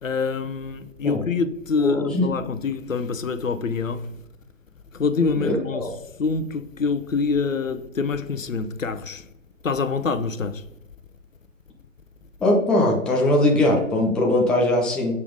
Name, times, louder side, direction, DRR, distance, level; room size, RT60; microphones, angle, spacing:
voice 1, 0.0-4.2 4.9-5.8 6.2-9.2 9.6-10.7, left 4 dB, 80° left, 0.9 m, -26 dB
voice 2, 1.8-2.3 5.4-5.9 12.4-15.2, left 1 dB, ahead, 0.5 m, -20 dB
7.0 x 5.1 x 5.0 m
figure-of-eight pair, 130°, 38 cm